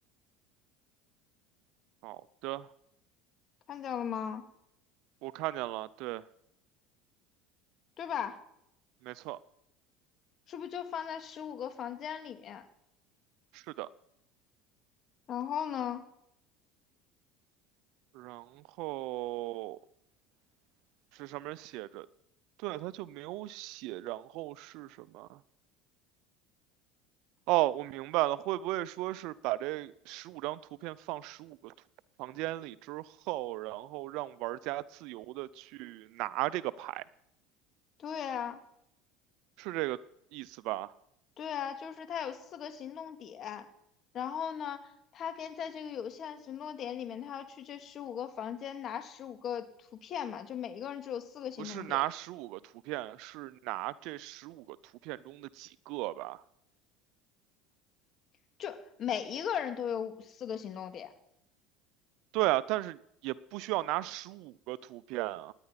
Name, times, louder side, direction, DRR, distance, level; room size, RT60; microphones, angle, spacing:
voice 1, 2.0-2.7 5.2-6.2 9.0-9.4 13.5-13.9 18.1-19.8 21.1-22.1 22.6-25.4 27.5-31.7 32.2-37.0 39.6-40.0 40.3-40.9 51.6-52.6 52.8-54.8 55.0-56.4 62.3-65.5, right 17 dB, 65° right, 0.5 m, -35 dB
voice 2, 3.7-4.4 8.0-8.4 10.5-12.7 15.3-16.1 38.0-38.6 41.4-43.7 44.1-52.0 58.6-61.1, left 8 dB, 45° left, 2.2 m, -38 dB
18.0 x 9.8 x 5.9 m
hypercardioid pair, 80°, 0 cm